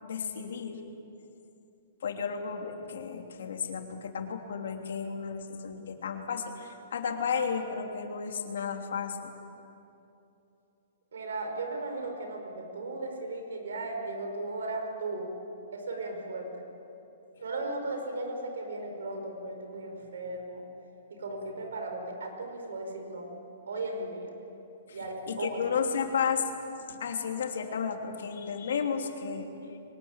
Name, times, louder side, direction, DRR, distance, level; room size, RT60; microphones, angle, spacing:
voice 1, 0.0-0.8 2.0-9.3 20.0-20.1 24.9-25.0 25.3-26.5 26.9-29.5, left 6 dB, 75° left, 3 dB, 3.2 m, -33 dB
voice 2, 11.1-15.3 15.7-16.7 17.4-20.6 21.1-23.3 23.7-24.3 24.9-25.6, right 2 dB, 90° right, 4 dB, 5.2 m, -36 dB
23.5 x 20.5 x 9.0 m, 2.8 s
hypercardioid pair, 160°, 0 cm